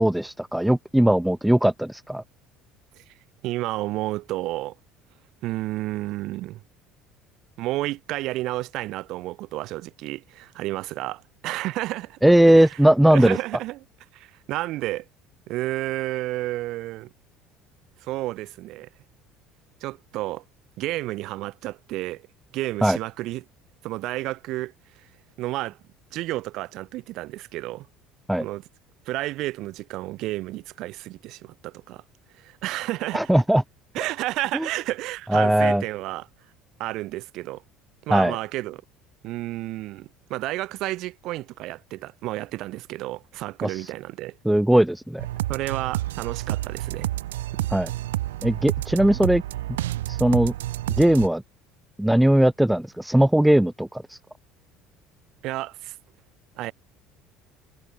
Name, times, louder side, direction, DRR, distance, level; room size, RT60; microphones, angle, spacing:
voice 1, 0.0-2.2 12.2-13.4 22.8-23.0 28.3-28.4 33.1-33.6 34.5-34.7 35.3-35.8 38.1-38.4 43.6-43.9 44.4-45.3 47.7-47.9 48.4-49.4 50.1-50.5 51.0-51.4 52.0-54.2, right 1 dB, 5° right, 1.1 m, -19 dB
voice 2, 3.4-4.8 5.4-6.6 7.6-12.2 12.4-12.8 13.1-13.8 14.1-15.1 15.5-17.1 18.0-18.9 19.8-20.4 20.8-22.3 22.5-23.5 23.8-25.1 25.4-25.8 26.1-27.9 28.4-28.6 29.0-32.0 32.3-33.3 33.9-36.3 36.8-37.6 38.0-38.8 39.2-44.4 45.5-47.1 47.5-47.7 55.4-56.0 56.5-56.7, right 17 dB, 65° right, 3.1 m, -31 dB
sound 1, 45.2-51.3, right 15 dB, 85° right, 2.7 m, -29 dB
hypercardioid pair, 75°, 0 cm